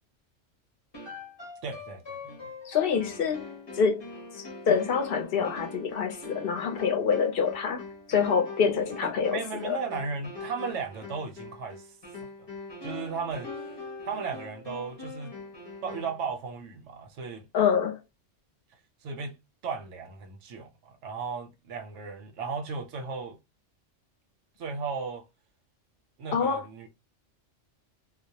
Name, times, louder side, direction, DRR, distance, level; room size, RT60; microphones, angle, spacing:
sound 1, 0.9-16.2, left 3 dB, 25° left, 0.7 m, -43 dB
voice 1, 1.6-2.5 9.0-11.9 12.8-13.5 14.0-15.4 15.8-17.5 19.0-19.4 19.6-23.4 24.6-25.2 26.2-26.9, right 5 dB, 75° right, 0.9 m, -35 dB
voice 2, 2.7-3.5 3.8-4.0 4.4-7.8 8.1-9.8 17.5-18.0 26.3-26.6, left 6 dB, 60° left, 0.7 m, -26 dB
2.3 x 2.0 x 2.7 m
omnidirectional pair, 1.3 m